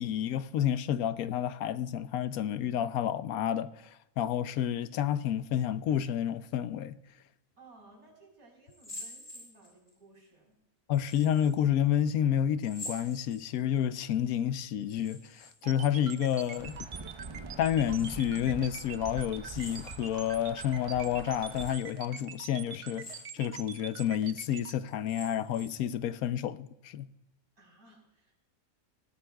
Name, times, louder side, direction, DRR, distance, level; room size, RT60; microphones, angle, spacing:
voice 1, 0.0-7.0 10.9-16.8 17.6-27.1, left 10 dB, 80° left, 1.1 m, -30 dB
voice 2, 7.6-10.6 27.6-28.4, right 2 dB, 85° right, 4.9 m, -58 dB
sound 1, 8.7-9.9 10.9-11.5 12.6-13.8 14.8-15.5 15.8-16.8 17.8-18.4 19.5-20.3 20.8-20.9 21.5-22.0 22.8-23.6 24.1-24.2 24.9-25.9, left 1 dB, 55° left, 5.3 m, -47 dB
sound 2, 15.6-24.7, right 7 dB, 65° right, 1.1 m, -44 dB
Insect / Thunder / Rain, 16.6-21.8, right 3 dB, 35° right, 0.5 m, -45 dB
20.5 x 14.5 x 2.3 m
omnidirectional pair, 1.5 m